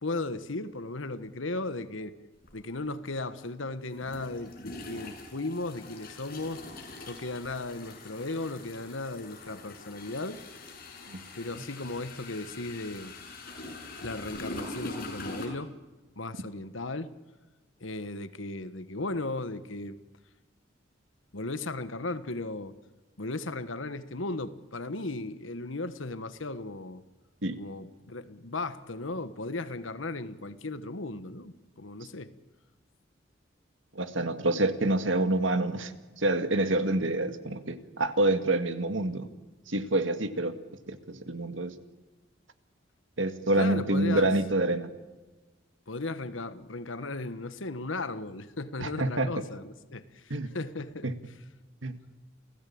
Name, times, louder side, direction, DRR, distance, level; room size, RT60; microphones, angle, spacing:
voice 1, 0.0-2.2 2.5-6.7 7.1-10.4 11.4-13.1 14.0-15.7 16.1-17.1 17.8-20.0 21.3-22.7 23.2-27.0 27.6-32.3 43.6-44.3 45.9-51.1, left 2 dB, 85° left, 1.4 m, -36 dB
sound 1, 2.4-2.6 3.9-15.5, left 2 dB, 50° left, 6.7 m, -43 dB
voice 2, 34.0-39.3 39.7-40.6 40.9-41.7 43.2-44.9 48.8-49.3 50.3-50.5 51.0-51.1 51.8-51.9, right 2 dB, 80° right, 2.0 m, -27 dB
29.5 x 16.5 x 8.7 m
head